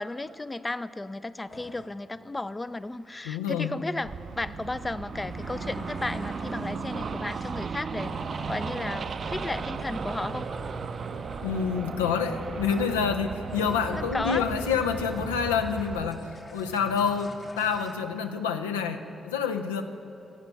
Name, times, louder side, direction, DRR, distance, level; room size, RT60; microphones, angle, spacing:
voice 1, 0.0-8.1 8.5-10.5 13.9-14.5, left 2 dB, 25° left, 15 dB, 0.4 m, -34 dB
sound 1, 1.5-1.9 5.1-11.9 12.6-18.0, left 2 dB, 40° left, 1.2 m, -44 dB
voice 2, 3.2-3.8 11.4-19.8, left 6 dB, 85° left, 7 dB, 0.4 m, -28 dB
sound 2, 4.0-16.1, right 5 dB, 50° right, 0.4 m, -36 dB
15.5 x 8.4 x 4.6 m, 2.7 s
hypercardioid pair, 40°, 0 cm